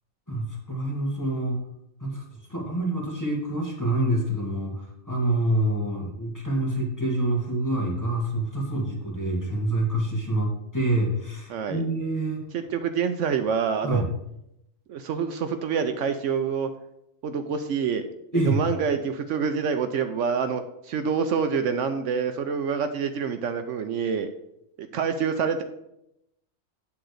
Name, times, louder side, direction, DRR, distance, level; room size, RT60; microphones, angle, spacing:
voice 1, 0.3-1.6 2.0-2.2 2.5-12.4 13.8-14.0 18.3-18.6, right 1 dB, 15° left, -3 dB, 1.8 m, -26 dB
voice 2, 11.5-11.8 12.5-14.0 14.9-16.7 17.2-18.0 18.3-24.3 24.8-25.6, right 6 dB, 70° right, 8 dB, 0.9 m, -27 dB
8.8 x 3.8 x 6.4 m, 0.82 s
omnidirectional pair, 1.3 m